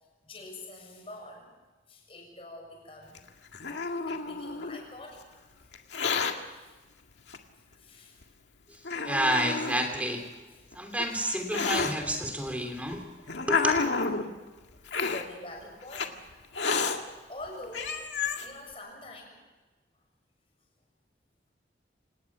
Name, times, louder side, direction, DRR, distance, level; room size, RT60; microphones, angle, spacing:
voice 1, 0.2-1.5 1.9-3.2 4.1-5.4 6.3-6.8 7.6-8.2 8.8-8.9 10.5-10.7 11.4-11.5 15.0-16.3 17.2-17.9 18.4-19.4, left 1 dB, 30° left, 1 dB, 6.7 m, -46 dB
Hiss, 3.1-4.8 5.7-6.3 7.3-7.4 8.2-8.3 8.8-9.9 10.7-11.9 12.8-14.3 14.9-15.2 15.9-16.1 16.5-17.0 17.4-17.5 17.7-18.5, left 5 dB, 80° left, 2.0 m, -30 dB
voice 2, 9.0-10.3 10.7-13.0 13.5-13.9, equal, 10° right, 4 dB, 3.0 m, -29 dB
27.5 x 18.5 x 7.4 m, 1.2 s
head